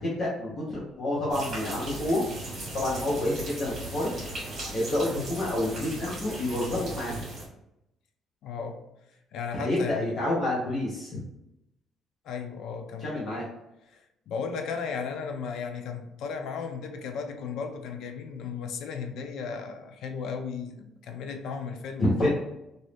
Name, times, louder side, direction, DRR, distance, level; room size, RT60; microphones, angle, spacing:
voice 1, 0.0-2.2 2.7-4.1 4.7-7.2 9.6-11.2 13.0-13.4 22.0-22.3, left 1 dB, 35° left, -6 dB, 0.9 m, -28 dB
sound 1, 1.3-7.5, right 1 dB, 40° right, 1.5 m, -37 dB
voice 2, 8.4-8.8 9.3-10.1 12.2-13.1 13.9-22.3, left 5 dB, 70° left, 5 dB, 0.5 m, -35 dB
3.0 x 2.6 x 3.2 m, 0.87 s
cardioid pair, 170°, 0 cm